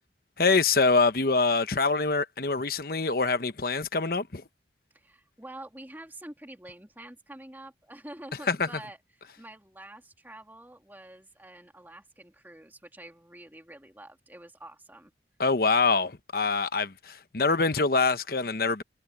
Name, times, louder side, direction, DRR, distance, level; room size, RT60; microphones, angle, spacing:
voice 1, 0.4-4.4 8.5-8.7 15.4-18.8, left 4 dB, 55° left, 1.1 m, -25 dB
voice 2, 4.9-9.0 9.4-15.1, right 1 dB, 10° right, 2.7 m, -47 dB
head